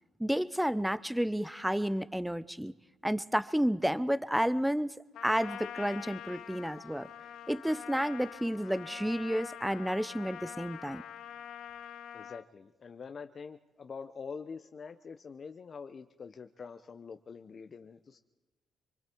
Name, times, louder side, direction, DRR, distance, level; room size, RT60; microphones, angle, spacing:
voice 1, 0.2-2.7 3.0-5.0 5.2-7.1 7.5-11.0, equal, 5° right, 16 dB, 0.6 m, -31 dB
Trumpet, 5.1-12.4, left 10 dB, 75° left, 0.9 m, -45 dB
voice 2, 12.1-18.2, left 5 dB, 45° left, 8 dB, 0.8 m, -45 dB
26.0 x 24.0 x 4.6 m, 1.1 s
cardioid pair, 90°, 0 cm